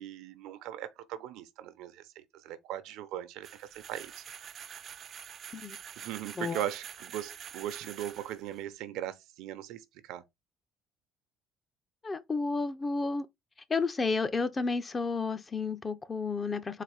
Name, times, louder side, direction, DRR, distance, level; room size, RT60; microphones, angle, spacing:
voice 1, 0.0-4.2 6.0-10.2, right 12 dB, 85° right, 0.7 m, -39 dB
sound 1, 3.4-8.6, right 8 dB, 40° right, 0.4 m, -46 dB
voice 2, 12.0-13.3 13.7-16.8, left 4 dB, 20° left, 0.5 m, -31 dB
4.1 x 2.6 x 4.8 m
cardioid pair, 140°, 0 cm